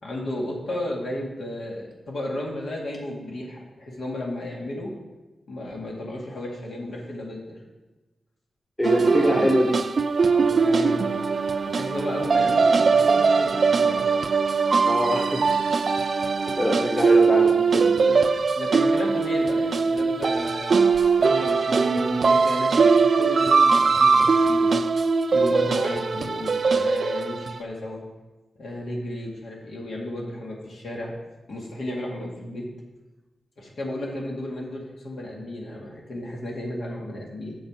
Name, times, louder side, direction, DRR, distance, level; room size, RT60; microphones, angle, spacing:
voice 1, 0.0-4.9 5.5-7.6 9.2-9.5 10.2-11.1 11.7-14.1 18.1-18.2 18.5-20.8 21.2-22.9 23.2-24.8 25.3-28.0 28.6-31.1 31.5-32.7 33.6-37.6, left 1 dB, 75° left, -2 dB, 2.1 m, -33 dB
voice 2, 8.8-9.7 14.9-15.4 16.5-18.3, equal, 20° left, 1 dB, 1.4 m, -24 dB
sound 1, 8.8-27.6, right 4 dB, 60° right, 0.4 m, -21 dB
8.0 x 6.6 x 5.2 m, 1.1 s
cardioid pair, 75°, 0 cm